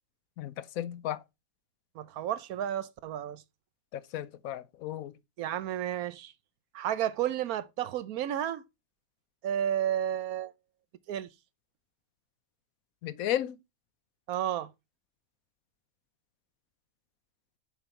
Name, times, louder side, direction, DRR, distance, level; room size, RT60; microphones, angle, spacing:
voice 1, 0.4-1.2 3.9-5.1 13.0-13.6, left 12 dB, 75° left, 1.1 m, -34 dB
voice 2, 1.9-3.4 5.4-6.3 6.7-8.6 9.4-10.5 11.1-11.3 14.3-14.7, right 10 dB, 80° right, 1.2 m, -32 dB
7.1 x 5.3 x 4.3 m
omnidirectional pair, 1.5 m